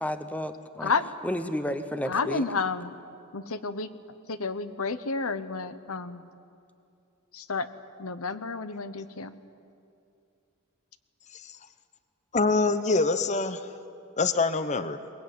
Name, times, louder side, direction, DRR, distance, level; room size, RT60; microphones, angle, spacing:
voice 1, 0.0-0.9 1.2-2.4, equal, 5° left, 10 dB, 0.9 m, -32 dB
voice 2, 2.1-2.9 3.3-3.9 4.3-6.3 7.3-7.7 8.0-9.3, left 4 dB, 70° left, 12 dB, 1.0 m, -30 dB
voice 3, 12.3-13.7 14.2-15.0, left 3 dB, 35° left, 12 dB, 0.8 m, -25 dB
22.0 x 20.5 x 9.3 m, 2.5 s
head